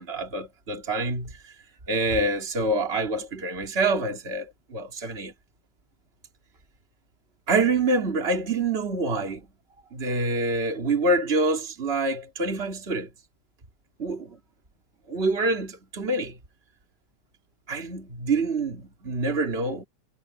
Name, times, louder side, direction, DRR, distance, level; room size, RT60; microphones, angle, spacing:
voice 1, 0.0-1.3 1.9-5.3 7.5-9.4 9.9-13.1 14.0-14.4 15.1-16.4 17.7-19.8, right 2 dB, 20° right, 3.3 m, -26 dB
omnidirectional pair, 3.5 m